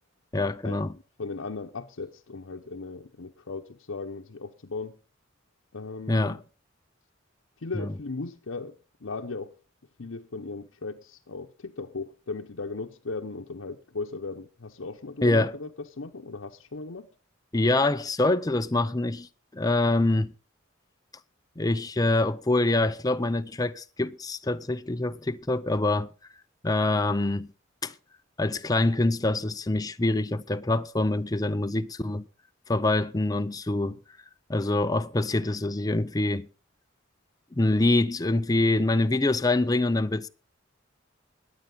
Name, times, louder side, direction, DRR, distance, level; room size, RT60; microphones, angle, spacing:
voice 1, 0.3-0.9 6.1-6.4 7.7-7.9 15.2-15.5 17.5-20.3 21.6-26.1 26.6-27.5 27.8-27.9 28.4-32.2 32.7-34.0 34.5-36.5 37.5-40.3, left 2 dB, 20° left, 0.6 m, -25 dB
voice 2, 1.2-5.0 5.7-6.4 7.6-9.5 10.0-17.1 33.7-34.0, left 3 dB, 85° left, 0.8 m, -37 dB
21.0 x 8.7 x 3.9 m
head